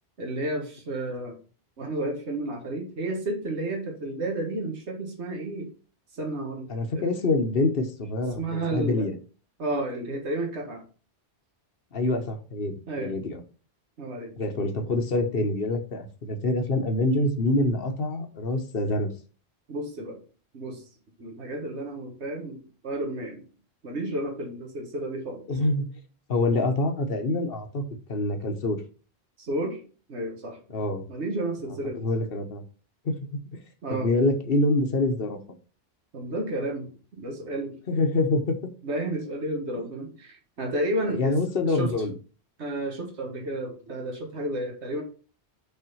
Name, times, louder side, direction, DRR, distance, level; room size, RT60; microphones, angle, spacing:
voice 1, 0.2-1.4 1.8-5.7 6.1-6.7 6.9-7.2 8.4-9.1 9.6-10.8 12.9-13.1 14.0-14.4 19.7-20.2 20.5-20.9 21.2-23.4 23.8-25.4 29.4-29.8 30.1-30.6 31.1-32.0 33.8-34.1 36.1-37.8 38.8-41.4 41.7-41.9 42.6-45.0, right 1 dB, 90° right, 1 dB, 1.7 m, -31 dB
voice 2, 6.7-9.1 11.9-13.4 14.4-19.1 25.5-25.9 26.3-28.8 30.7-31.0 32.0-32.6 33.0-33.4 33.9-35.4 37.9-38.6 41.1-42.1, left 2 dB, 60° left, 7 dB, 1.2 m, -26 dB
5.8 x 4.2 x 5.5 m, 0.37 s
omnidirectional pair, 1.1 m